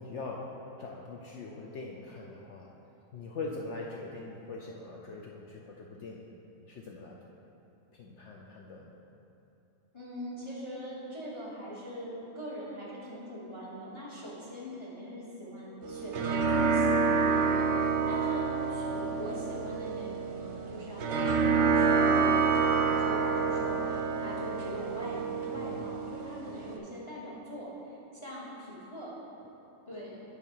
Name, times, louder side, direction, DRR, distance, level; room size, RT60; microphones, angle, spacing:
voice 1, 0.0-2.7 3.1-6.3 6.6-7.2 7.9-8.9 17.6-17.8 25.5-25.8, left 3 dB, 65° left, -1 dB, 0.8 m, -42 dB
voice 2, 9.9-29.2 29.9-30.2, equal, 20° left, -5 dB, 1.0 m, -42 dB
sound 1, 15.8-26.8, right 5 dB, 60° right, 0.9 m, -28 dB
8.4 x 4.9 x 4.5 m, 2.8 s
omnidirectional pair, 1.5 m